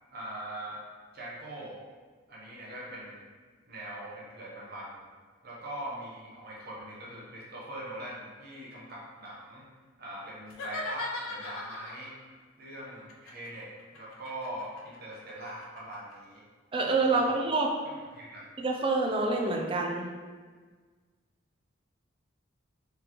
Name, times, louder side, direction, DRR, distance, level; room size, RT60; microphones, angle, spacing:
voice 1, 0.1-0.8 1.1-1.8 2.3-3.2 3.7-5.0 5.4-9.6 10.0-12.1 12.6-16.4 17.1-17.4 17.8-18.5, right 1 dB, 50° right, -5 dB, 0.7 m, -42 dB
sound 1, 10.5-12.2 13.1-16.2, left 2 dB, 90° left, 0.5 m, -39 dB
voice 2, 16.7-17.7 18.6-20.0, right 3 dB, 25° right, 1 dB, 0.4 m, -27 dB
4.0 x 3.2 x 2.9 m, 1.5 s
head